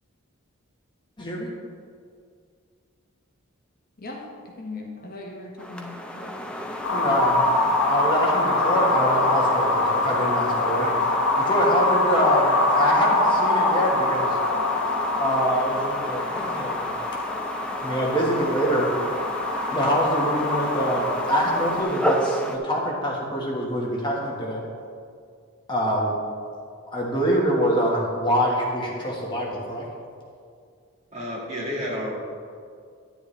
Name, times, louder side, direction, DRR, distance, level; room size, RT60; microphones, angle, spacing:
voice 1, 1.2-1.5 6.9-7.4 7.8-14.4 15.2-16.9 17.8-18.9 19.7-24.6 25.7-26.1 26.9-29.8, equal, 20° left, -3 dB, 1.4 m, -25 dB
voice 2, 4.0-6.3, left 2 dB, 40° left, 0 dB, 1.1 m, -38 dB
sound 1, 5.6-22.6, equal, 5° left, 0.5 m, -31 dB
sound 2, 6.8-21.8, left 2 dB, 85° left, 1.4 m, -25 dB
voice 3, 31.1-32.1, equal, 30° right, -4 dB, 1.9 m, -30 dB
10.5 x 9.8 x 3.3 m, 2.2 s
head